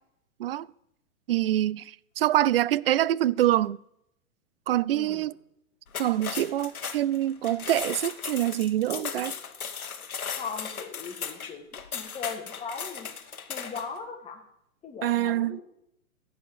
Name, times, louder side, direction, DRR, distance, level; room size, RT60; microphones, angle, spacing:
voice 1, 1.3-3.8 4.7-5.3 6.0-9.3 15.0-15.6, right 13 dB, 45° right, 0.4 m, -25 dB
voice 2, 4.9-5.3 8.9-9.2 10.3-13.1 13.5-14.4 14.8-15.6, left 5 dB, 15° left, 2.6 m, -39 dB
sound 1, 5.9-14.0, left 7 dB, 75° left, 1.7 m, -37 dB
15.0 x 9.6 x 5.7 m
hypercardioid pair, 120°, 43 cm